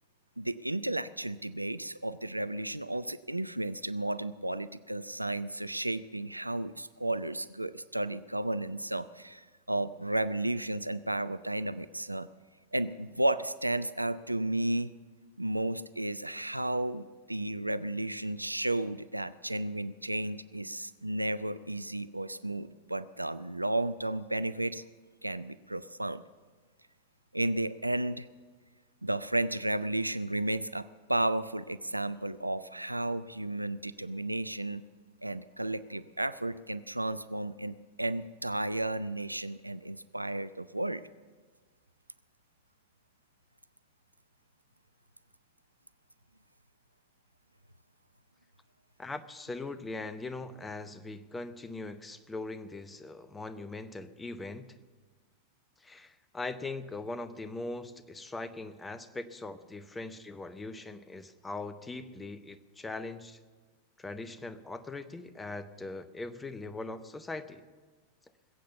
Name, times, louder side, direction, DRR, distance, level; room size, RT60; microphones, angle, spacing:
voice 1, 0.4-12.3 12.7-14.9 15.4-24.8 25.2-26.2 27.3-28.3 29.0-34.8 35.2-41.0, right 1 dB, 85° right, 15 dB, 0.4 m, -33 dB
voice 2, 49.0-54.8 55.8-63.4 64.0-67.6, left 3 dB, 10° left, 13 dB, 0.8 m, -41 dB
20.5 x 8.4 x 7.0 m, 1.4 s
figure-of-eight pair, 90°, 0 cm